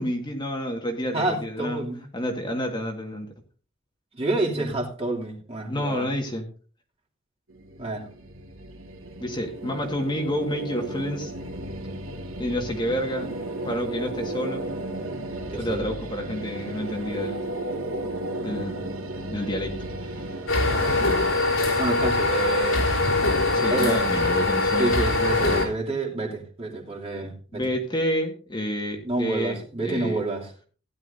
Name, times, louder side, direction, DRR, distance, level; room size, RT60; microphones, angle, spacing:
voice 1, 0.0-1.9 2.1-3.3 4.5-4.7 5.7-6.5 9.2-11.3 12.4-13.3 13.6-14.7 15.6-17.4 18.4-18.9 19.3-20.3 23.5-25.0 27.5-30.2, equal, 20° left, 2 dB, 1.8 m, -29 dB
voice 2, 1.1-2.0 4.1-6.1 7.8-8.1 15.5-15.8 20.8-21.2 21.8-22.8 23.5-24.0 24.8-27.6 29.0-30.5, right 2 dB, 30° right, -2 dB, 2.9 m, -29 dB
sound 1, 7.5-22.5, right 1 dB, 85° right, 2.3 m, -35 dB
sound 2, 20.5-25.7, left 2 dB, 85° left, 3.7 m, -22 dB
16.0 x 11.0 x 2.7 m, 0.39 s
head